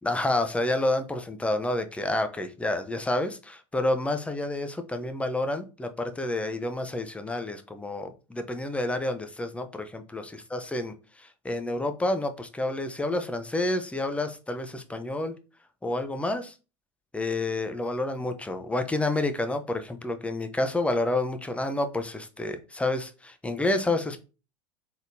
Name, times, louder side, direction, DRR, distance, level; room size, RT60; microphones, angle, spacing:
voice 1, 0.0-15.3 15.8-16.5 17.1-24.2, left 2 dB, 5° left, 8 dB, 0.6 m, -29 dB
4.0 x 3.5 x 2.6 m, 0.32 s
hypercardioid pair, 80°, 17 cm